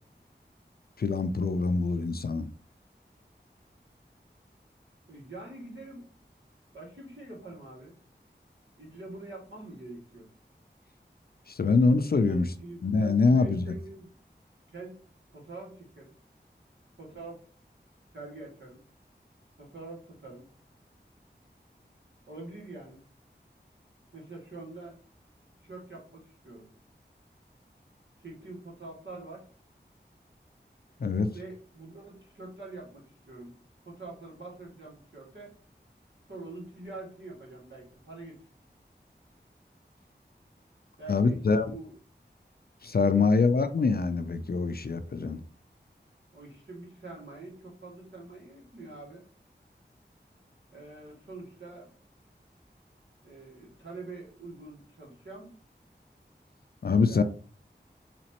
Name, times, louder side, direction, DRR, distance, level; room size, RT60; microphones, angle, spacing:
voice 1, 1.0-2.5 11.5-12.5 12.8-13.6 31.0-31.3 41.1-41.7 42.8-45.4 56.8-57.2, left 4 dB, 60° left, 0.4 m, -24 dB
voice 2, 5.1-6.1 6.7-7.9 8.8-10.3 12.2-14.1 14.7-15.0 15.3-16.1 17.0-17.4 18.1-18.8 19.6-20.4 22.3-23.0 24.1-25.0 25.6-26.7 28.2-29.5 31.3-33.6 33.9-35.5 36.3-38.4 41.0-41.9 43.2-43.3 46.3-49.2 50.7-51.9 53.2-55.5 57.0-57.2, right 2 dB, 80° right, 1.9 m, -45 dB
4.1 x 3.0 x 2.9 m
wide cardioid pair, 50°, 18 cm